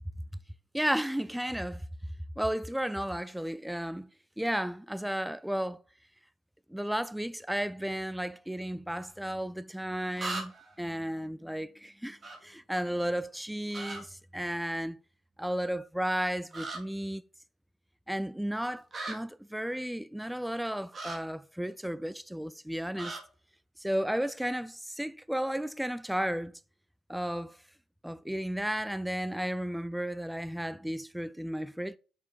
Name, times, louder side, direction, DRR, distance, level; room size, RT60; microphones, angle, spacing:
voice 1, 0.7-1.8 2.4-4.1 4.4-5.8 6.7-10.5 10.8-15.0 15.4-17.2 18.1-23.1 23.8-26.5 27.1-27.6 28.0-32.0, equal, 5° right, 0.4 m, -33 dB
sound 1, 9.1-9.2 10.2-10.7 12.2-12.4 13.7-14.0 16.5-16.8 18.9-19.1 20.9-21.2 22.9-23.2, right 2 dB, 35° right, 2.6 m, -37 dB
6.8 x 6.1 x 4.5 m
cardioid pair, 105°, 0 cm